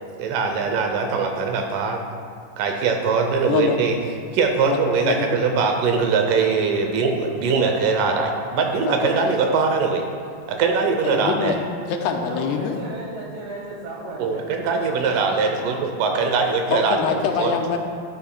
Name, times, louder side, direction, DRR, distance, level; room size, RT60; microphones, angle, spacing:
voice 1, 0.2-2.0 2.6-4.0 4.3-10.1 10.5-11.5 14.2-17.0 17.4-17.5, right 4 dB, 85° right, 3 dB, 1.9 m, -21 dB
voice 2, 4.7-5.4 8.9-9.3 11.0-11.6 11.9-12.7 16.7-17.8, left 7 dB, 90° left, 3 dB, 2.7 m, -24 dB
voice 3, 12.3-15.8 16.5-16.6, right 2 dB, 70° right, -3 dB, 2.3 m, -36 dB
12.5 x 12.5 x 2.2 m, 2.2 s
omnidirectional pair, 4.7 m